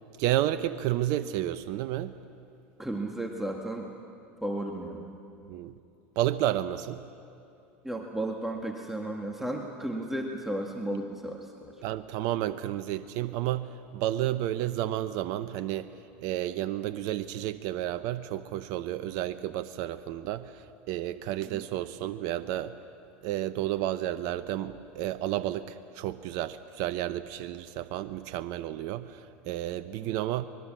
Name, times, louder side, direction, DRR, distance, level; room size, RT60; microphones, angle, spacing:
voice 1, 0.2-2.1 5.5-5.7 6.2-7.0 11.8-15.9 16.2-22.7 23.2-30.4, right 13 dB, 60° right, 12 dB, 0.8 m, -31 dB
voice 2, 2.8-3.9 4.4-5.1 7.8-11.7 21.5-21.6 30.0-30.2, right 1 dB, 5° right, 2 dB, 1.9 m, -34 dB
24.5 x 21.0 x 7.5 m, 2.6 s
hypercardioid pair, 95°, 7 cm